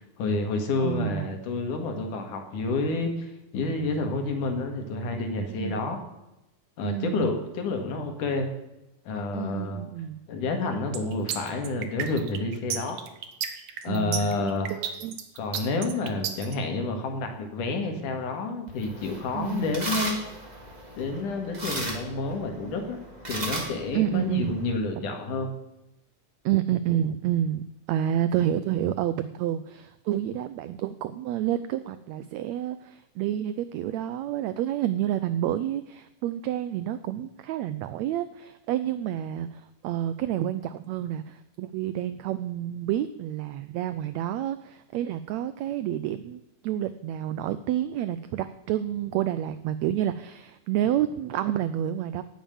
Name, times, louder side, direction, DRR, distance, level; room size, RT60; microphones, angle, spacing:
voice 1, 0.2-3.3 3.5-6.0 6.8-8.5 9.1-9.8 10.3-13.0 13.8-14.7 15.4-20.2 21.0-23.0 23.3-25.5, left 3 dB, 75° left, 5 dB, 3.3 m, -29 dB
voice 2, 0.8-1.3 5.5-5.8 6.8-7.4 9.3-10.2 13.9-15.2 19.3-19.7 23.9-24.5 26.4-52.2, right 11 dB, 85° right, 13 dB, 1.5 m, -29 dB
sound 1, 10.9-16.5, right 8 dB, 65° right, 2.4 m, -32 dB
sound 2, 18.7-24.7, right 1 dB, 15° right, 1.7 m, -36 dB
17.5 x 7.4 x 7.1 m, 0.93 s
omnidirectional pair, 3.7 m